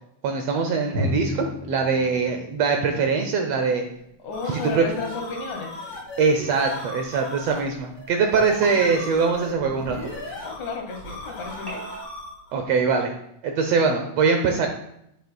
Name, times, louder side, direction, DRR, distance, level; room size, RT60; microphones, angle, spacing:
voice 1, 0.2-3.8 4.7-4.8 6.2-10.0 12.5-13.1 13.4-14.7, right 5 dB, 75° right, 4 dB, 1.6 m, -22 dB
Drum, 0.9-4.5, equal, 30° right, 3.5 m, -33 dB
sound 1, 4.0-12.5, left 1 dB, 40° left, 2.7 m, -38 dB
voice 2, 4.2-5.7 10.4-11.8, left 4 dB, 75° left, 3 dB, 2.6 m, -32 dB
sound 2, 8.3-10.5 11.7-12.0, equal, 5° right, 2.8 m, -38 dB
9.3 x 8.0 x 2.3 m, 0.76 s
omnidirectional pair, 3.4 m